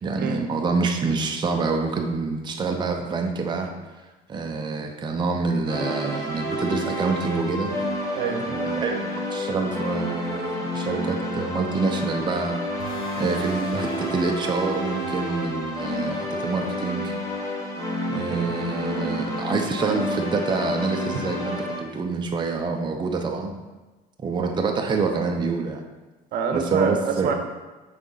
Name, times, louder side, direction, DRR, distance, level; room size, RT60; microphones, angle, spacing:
voice 1, 0.0-3.7 4.3-7.8 8.5-12.6 13.2-17.1 18.1-23.6 24.2-25.9 26.5-27.3, right 4 dB, 25° right, 3 dB, 0.6 m, -26 dB
sound 1, 5.7-21.8, left 1 dB, 20° left, 1.3 m, -30 dB
voice 2, 8.1-8.5 18.2-18.5 26.3-27.3, right 5 dB, 70° right, 5 dB, 0.8 m, -26 dB
sound 2, 12.8-18.0, right 1 dB, 65° left, 1.5 m, -40 dB
6.6 x 4.1 x 3.9 m, 1.2 s
cardioid pair, 110°, 17 cm